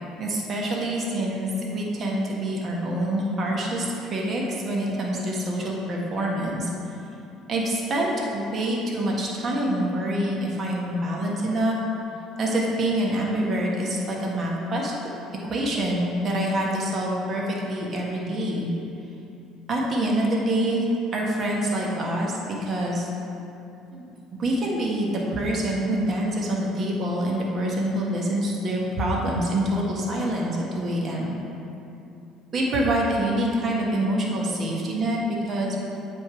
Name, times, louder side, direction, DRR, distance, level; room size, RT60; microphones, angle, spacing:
voice 1, 0.2-6.7 7.5-11.8 12.4-14.9 15.4-18.7 19.7-23.1 23.9-24.0 24.4-31.4 32.5-35.2 35.4-35.8, right 1 dB, 45° right, -2 dB, 1.3 m, -26 dB
7.7 x 3.7 x 4.8 m, 2.7 s
hypercardioid pair, 70°, 0 cm